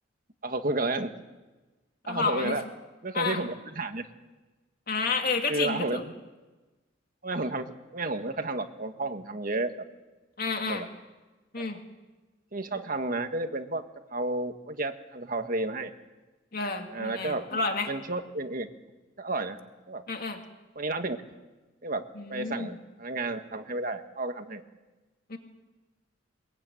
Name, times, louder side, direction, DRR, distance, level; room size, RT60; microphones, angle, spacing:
voice 1, 0.4-1.1 2.1-2.6 3.0-4.1 5.5-6.1 7.2-9.7 10.6-10.9 11.6-11.7 12.5-13.8 14.1-15.9 16.9-17.4 17.9-18.7 19.2-19.6 19.9-20.0 20.7-21.2 21.8-24.6, right 2 dB, 45° right, 7 dB, 1.8 m, -32 dB
voice 2, 2.0-2.6 3.1-3.4 4.9-6.0 10.4-10.9 11.5-11.8 16.5-17.9 20.1-20.4 22.2-22.7 25.3-25.4, left 4 dB, 50° left, 4 dB, 2.4 m, -30 dB
23.0 x 22.0 x 9.3 m, 1.2 s
head